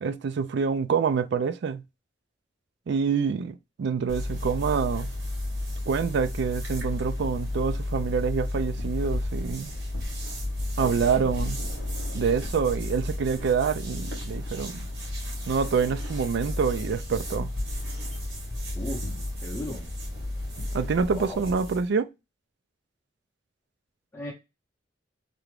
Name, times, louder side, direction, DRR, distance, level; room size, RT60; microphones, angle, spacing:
voice 1, 0.0-1.8 2.9-5.1 5.9-9.7 10.8-11.6 12.1-14.9 15.5-17.5 20.7-22.1, right 6 dB, 65° right, 0.4 m, -26 dB
sound 1, 4.1-21.9, left 1 dB, 85° right, 1.8 m, -32 dB
voice 2, 10.8-11.3 18.7-19.0 19.4-19.9 21.1-21.4 24.1-24.3, left 1 dB, 15° left, 0.9 m, -36 dB
3.4 x 2.4 x 3.2 m
head